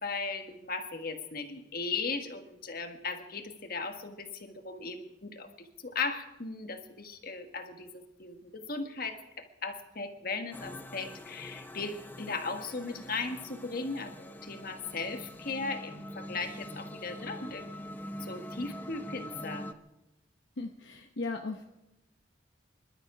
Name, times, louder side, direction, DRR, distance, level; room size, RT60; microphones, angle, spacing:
voice 1, 0.0-17.9 18.2-19.7, left 4 dB, 50° left, 6 dB, 1.4 m, -37 dB
sound 1, 10.5-19.7, left 1 dB, 10° left, 0.7 m, -44 dB
voice 2, 20.6-21.6, left 3 dB, 65° left, 4 dB, 0.8 m, -37 dB
24.5 x 12.0 x 5.0 m, 0.97 s
head